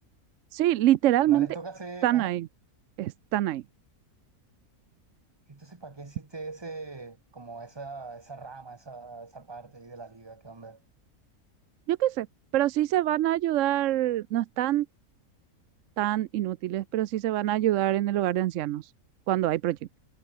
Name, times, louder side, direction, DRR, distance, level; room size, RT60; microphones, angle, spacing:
voice 1, 0.5-1.5 2.0-2.5 3.0-3.6 11.9-12.3 12.5-14.9 16.0-18.9 19.3-19.8, right 13 dB, 70° right, 0.8 m, -25 dB
voice 2, 1.3-2.3 5.5-10.8, right 3 dB, 20° right, 1.2 m, -41 dB
omnidirectional pair, 1.6 m